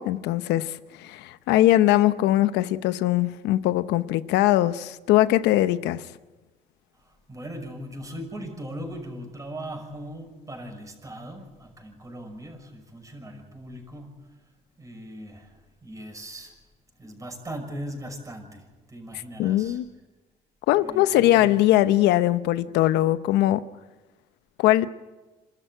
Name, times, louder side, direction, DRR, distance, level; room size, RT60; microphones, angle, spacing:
voice 1, 0.0-6.0 19.4-19.8 20.7-23.6 24.6-24.9, left 14 dB, 85° left, 0.8 m, -21 dB
voice 2, 6.9-14.4 14.8-16.5 17.0-19.8 20.7-21.5, right 1 dB, 20° right, 6.0 m, -39 dB
28.0 x 13.0 x 9.2 m
cardioid pair, 110°, 17 cm